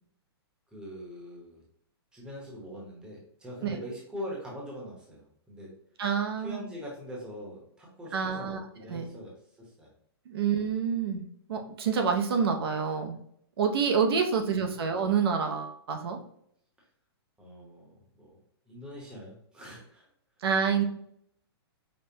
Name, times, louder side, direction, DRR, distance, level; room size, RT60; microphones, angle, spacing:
voice 1, 0.7-1.6 2.1-5.7 6.4-9.9 10.3-10.4 14.3-14.8 17.4-18.4 18.7-20.1 20.8-20.9, equal, 5° right, -3 dB, 0.8 m, -43 dB
voice 2, 6.0-6.6 8.1-8.6 8.9-9.1 10.3-13.2 13.6-16.2 20.4-20.8, right 6 dB, 65° right, 4 dB, 0.6 m, -27 dB
5.1 x 2.1 x 2.7 m, 0.69 s
hypercardioid pair, 160°, 14 cm